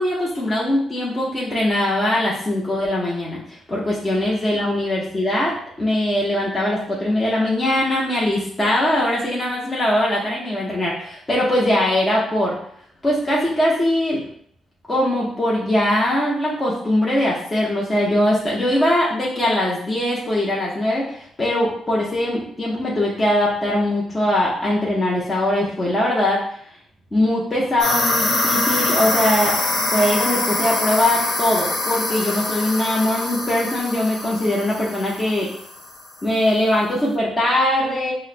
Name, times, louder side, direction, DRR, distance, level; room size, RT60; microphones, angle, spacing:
voice 1, 0.0-12.6 13.0-14.2 14.9-26.4 27.1-29.5 29.9-35.5 36.2-38.1, left 1 dB, 20° left, -5 dB, 0.6 m, -21 dB
sound 1, 27.8-36.0, left 2 dB, 75° left, 0.9 m, -24 dB
5.4 x 2.0 x 2.5 m, 0.64 s
cardioid pair, 130°, 0 cm